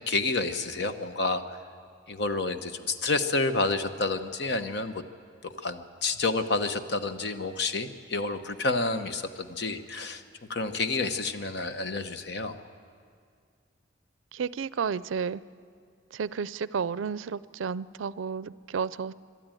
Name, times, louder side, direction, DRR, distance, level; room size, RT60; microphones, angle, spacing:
voice 1, 0.0-1.6 2.1-5.0 5.4-10.2 10.5-12.6, left 3 dB, 60° left, 9 dB, 0.9 m, -29 dB
voice 2, 14.3-15.4 16.1-19.1, right 6 dB, 80° right, 18 dB, 0.4 m, -32 dB
23.0 x 12.5 x 9.0 m, 2.2 s
head